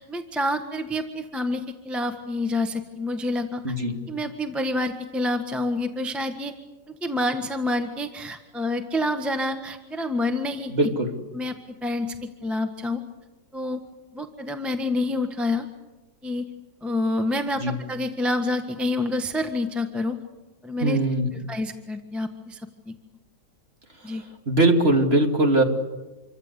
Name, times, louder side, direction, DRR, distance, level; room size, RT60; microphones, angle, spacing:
voice 1, 0.0-3.7 4.1-6.5 7.0-10.7 11.3-13.0 13.5-13.8 14.1-15.7 16.2-16.4 16.8-20.2 20.6-21.0 21.5-22.6 22.9-23.0 24.0-24.2, left 1 dB, ahead, 6 dB, 1.3 m, -28 dB
voice 2, 3.6-4.0 10.7-11.1 17.6-17.8 20.8-21.3 24.5-25.6, right 1 dB, 35° right, 3 dB, 3.0 m, -21 dB
27.0 x 24.5 x 8.2 m, 1.1 s
omnidirectional pair, 1.9 m